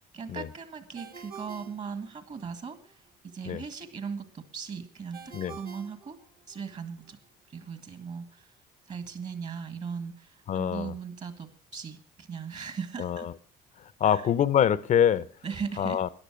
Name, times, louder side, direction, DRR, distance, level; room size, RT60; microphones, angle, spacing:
voice 1, 0.0-2.9 3.3-6.2 6.5-7.2 7.5-8.5 8.9-13.3 14.0-14.2 15.4-16.0, right 6 dB, 45° right, 1.9 m, -38 dB
Ringtone, 0.9-2.6 5.1-6.8, right 6 dB, 65° right, 2.1 m, -47 dB
voice 2, 10.5-10.9 13.0-13.3 13.8-15.3 15.8-16.1, left 9 dB, 50° left, 0.7 m, -25 dB
14.0 x 10.5 x 6.2 m
cardioid pair, 110°, 17 cm